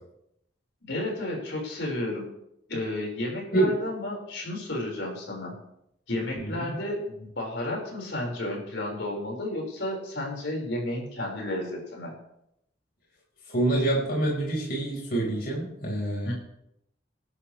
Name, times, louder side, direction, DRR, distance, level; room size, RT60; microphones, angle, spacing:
voice 1, 0.8-2.3 2.7-5.5 6.1-12.1 16.2-16.3, left 1 dB, 70° left, -1 dB, 5.3 m, -32 dB
voice 2, 6.4-6.8 13.5-16.3, right 2 dB, 55° left, -3 dB, 5.0 m, -26 dB
27.5 x 11.5 x 3.4 m, 0.78 s
head